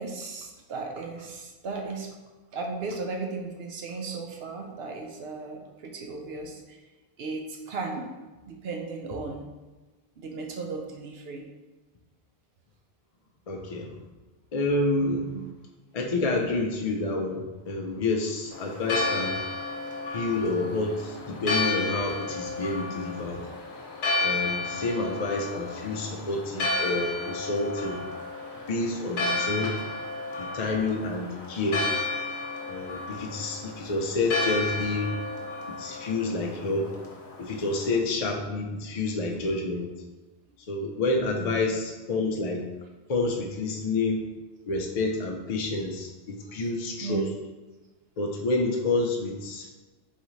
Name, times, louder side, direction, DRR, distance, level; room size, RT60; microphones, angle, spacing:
voice 1, 0.0-2.2 2.5-6.8 7.2-8.2 8.5-9.5 10.2-11.5 15.0-15.4 38.9-39.0 41.4-41.5 46.4-46.5 47.0-47.3, right 4 dB, 75° right, 2 dB, 0.8 m, -36 dB
voice 2, 13.5-13.9 14.5-15.3 15.9-19.4 20.1-23.4 24.2-28.0 28.7-29.8 30.4-31.8 32.7-35.1 35.7-36.9 37.4-39.9 40.7-42.6 43.1-44.3 44.7-47.3 48.2-49.7, left 2 dB, 50° left, 0 dB, 0.5 m, -28 dB
Church bell, 18.5-37.9, left 2 dB, 90° left, 1.1 m, -32 dB
4.1 x 3.7 x 3.1 m, 1.2 s
omnidirectional pair, 1.1 m